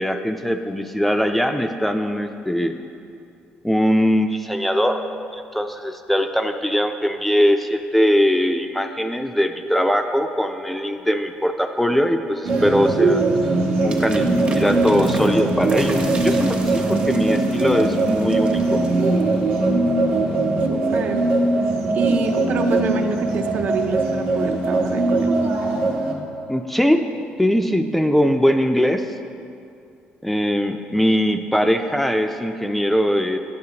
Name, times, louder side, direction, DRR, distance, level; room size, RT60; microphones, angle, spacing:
voice 1, 0.0-2.8 3.6-5.0 5.3-13.2 13.8-14.3 14.5-18.8 26.5-27.1 27.4-29.1 30.2-33.4, equal, 5° left, 6 dB, 0.3 m, -21 dB
sound 1, 12.4-26.1, right 2 dB, 75° right, 1.0 m, -20 dB
sound 2, 13.9-19.4, right 3 dB, 35° right, 0.9 m, -37 dB
voice 2, 20.7-21.2 21.9-25.3, right 5 dB, 55° right, 6 dB, 0.5 m, -26 dB
9.3 x 6.7 x 2.9 m, 2.5 s
cardioid pair, 90°, 3 cm